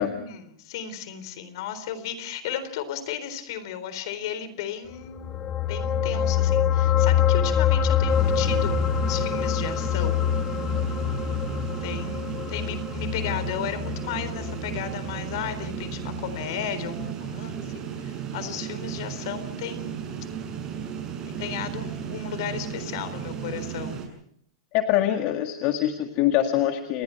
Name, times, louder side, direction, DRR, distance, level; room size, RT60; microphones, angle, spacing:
voice 1, 0.0-8.8 9.1-10.2 11.8-17.7 18.0-20.0 21.3-24.0, left 9 dB, 60° left, 12 dB, 3.9 m, -34 dB
sound 1, 5.0-15.8 16.1-16.3, left 8 dB, 25° left, 1.8 m, -25 dB
sound 2, 8.1-24.1, right 8 dB, 25° right, 7.3 m, -34 dB
voice 2, 24.7-27.0, left 12 dB, 45° left, 5 dB, 1.9 m, -24 dB
29.5 x 21.0 x 4.7 m, 0.68 s
hypercardioid pair, 140°, 3 cm